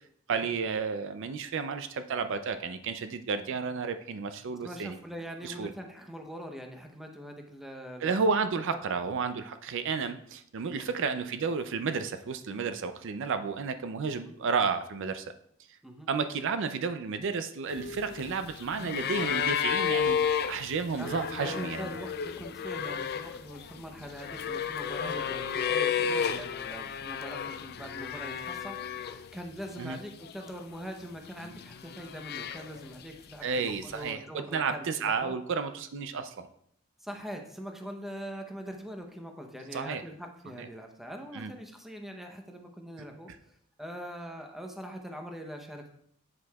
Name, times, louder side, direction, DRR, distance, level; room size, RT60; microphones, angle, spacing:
voice 1, 0.3-5.0 5.4-5.7 8.0-15.3 16.1-21.9 29.8-30.0 33.4-34.2 34.5-36.5 39.7-40.0 41.3-41.5, right 5 dB, 60° right, 10 dB, 0.4 m, -32 dB
voice 2, 4.6-8.3 8.7-9.0 10.6-10.9 14.2-14.3 15.8-16.1 21.0-35.4 37.0-45.9, equal, ahead, 3 dB, 0.7 m, -43 dB
sound 1, 17.7-29.4 29.7-30.6 31.3-33.0 34.0-34.1, left 7 dB, 50° left, 0.4 m, -32 dB
8.3 x 7.5 x 2.3 m, 0.68 s
head